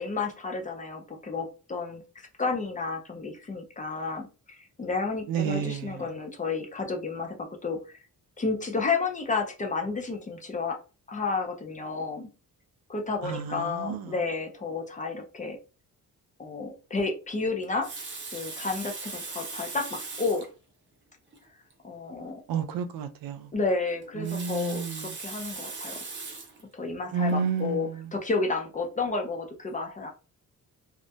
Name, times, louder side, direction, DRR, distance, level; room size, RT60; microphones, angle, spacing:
voice 1, 0.0-8.0 8.4-10.8 11.1-12.3 12.9-15.6 16.4-17.9 18.3-20.4 21.8-22.4 23.5-26.0 26.7-30.1, left 4 dB, 25° left, 0.3 m, -31 dB
voice 2, 5.3-6.0 13.2-14.2 22.5-23.5 24.2-25.2 27.1-28.1, right 6 dB, 80° right, 0.5 m, -30 dB
Water tap faucet, 17.6-20.5 21.3-21.4 21.7-21.8 24.0-26.6 27.3-27.5, right 4 dB, 35° right, 0.5 m, -39 dB
2.3 x 2.1 x 2.6 m
wide cardioid pair, 170°, 34 cm